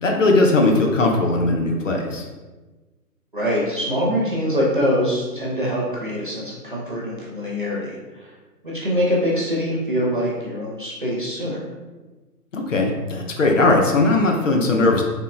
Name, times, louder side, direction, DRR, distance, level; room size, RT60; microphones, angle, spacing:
voice 1, 0.0-2.3 12.5-15.0, left 2 dB, 50° left, 1 dB, 0.5 m, -19 dB
voice 2, 3.3-8.3 8.6-11.6, equal, 35° right, -5 dB, 0.4 m, -24 dB
3.5 x 2.5 x 2.5 m, 1.2 s
figure-of-eight pair, 135°, 49 cm